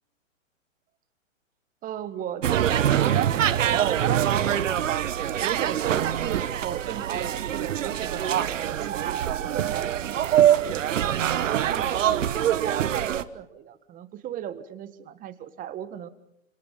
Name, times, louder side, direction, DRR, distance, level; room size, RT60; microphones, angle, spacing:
voice 1, 1.8-5.1 5.4-8.4 8.6-11.2 11.5-12.3 12.6-16.1, right 10 dB, 20° right, 13 dB, 1.5 m, -37 dB
sound 1, 2.4-13.2, right 10 dB, 70° right, 1.3 m, -24 dB
30.0 x 26.5 x 5.4 m, 0.75 s
hypercardioid pair, 135°, 39 cm